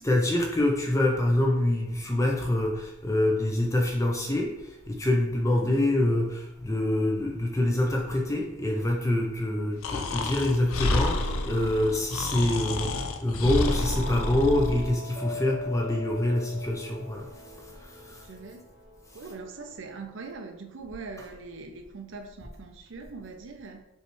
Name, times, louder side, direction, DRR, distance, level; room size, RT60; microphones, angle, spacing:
voice 1, 0.0-17.3 17.8-18.2, left 1 dB, 15° left, 0 dB, 0.5 m, -26 dB
Breathing, 9.8-14.9, left 2 dB, 70° left, 0.4 m, -29 dB
sound 1, 13.7-20.2, left 2 dB, 45° left, 1.6 m, -41 dB
voice 2, 18.1-18.6 19.1-23.8, right 4 dB, 55° right, 5 dB, 0.5 m, -42 dB
5.3 x 3.2 x 3.1 m, 0.91 s
head